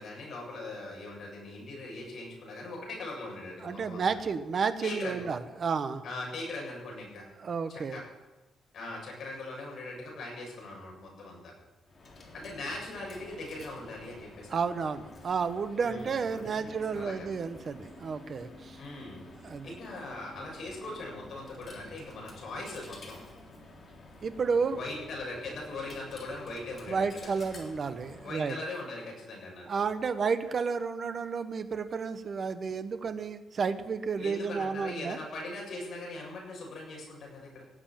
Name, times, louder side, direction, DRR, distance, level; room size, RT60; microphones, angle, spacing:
voice 1, 0.0-4.0 4.8-5.3 6.0-7.2 7.7-8.0 8.7-11.5 12.3-14.6 15.8-17.3 18.8-19.3 19.6-23.2 24.7-27.3 28.2-29.8 34.2-37.6, left 2 dB, 50° left, -2 dB, 7.4 m, -40 dB
voice 2, 3.6-6.0 7.4-8.0 14.5-18.8 19.4-19.7 24.2-24.8 26.9-28.6 29.7-35.2, right 5 dB, 40° right, 9 dB, 1.1 m, -31 dB
Coin (dropping), 11.8-28.5, left 2 dB, 30° left, 3.4 m, -50 dB
17.5 x 8.1 x 8.9 m, 1.1 s
cardioid pair, 155°, 0 cm